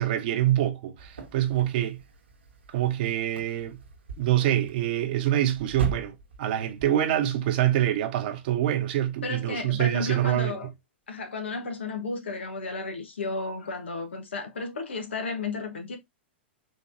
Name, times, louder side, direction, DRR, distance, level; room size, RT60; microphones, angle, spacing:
voice 1, 0.0-2.0 2.7-3.8 4.2-10.6, right 12 dB, 55° right, 0.9 m, -25 dB
sound 1, 1.0-6.9, right 5 dB, 80° right, 1.3 m, -40 dB
voice 2, 9.2-10.7 11.1-16.0, left 3 dB, 80° left, 1.2 m, -33 dB
4.3 x 3.1 x 2.6 m
hypercardioid pair, 105°, 6 cm